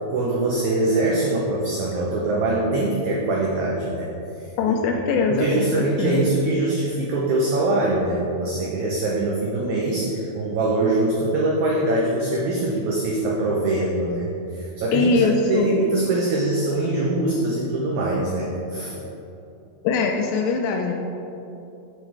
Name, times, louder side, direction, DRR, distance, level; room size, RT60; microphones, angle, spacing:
voice 1, 0.1-4.1 4.4-4.5 5.1-15.1 15.5-19.0, right 2 dB, 85° right, -3 dB, 1.6 m, -23 dB
voice 2, 4.6-6.3 14.9-15.7 19.8-20.9, left 4 dB, 80° left, 2 dB, 2.1 m, -22 dB
7.5 x 4.4 x 4.6 m, 2.8 s
omnidirectional pair, 4.4 m